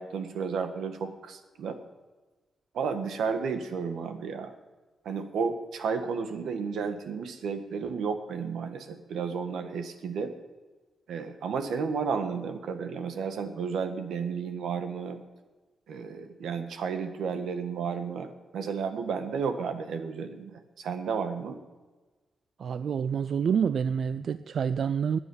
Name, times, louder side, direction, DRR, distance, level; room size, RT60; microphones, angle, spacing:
voice 1, 0.0-1.8 2.7-4.5 5.0-10.3 11.1-15.2 15.9-21.6, right 5 dB, 85° right, 7 dB, 1.5 m, -32 dB
voice 2, 22.6-25.2, right 7 dB, 65° right, 14 dB, 0.4 m, -27 dB
12.0 x 9.7 x 9.6 m, 1.3 s
cardioid pair, 95°, 0 cm